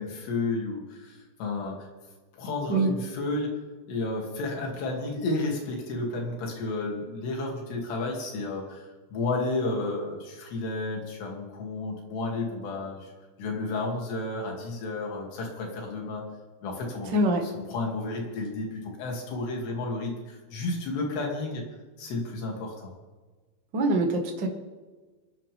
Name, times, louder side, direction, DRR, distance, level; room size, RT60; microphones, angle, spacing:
voice 1, 0.0-1.8 2.3-3.5 3.9-13.1 13.4-16.2 16.6-21.6 22.0-22.9, left 2 dB, 70° left, -1 dB, 4.8 m, -32 dB
voice 2, 17.1-17.5 23.7-24.5, right 2 dB, 65° right, 2 dB, 1.1 m, -24 dB
29.5 x 10.5 x 3.6 m, 1.3 s
omnidirectional pair, 5.1 m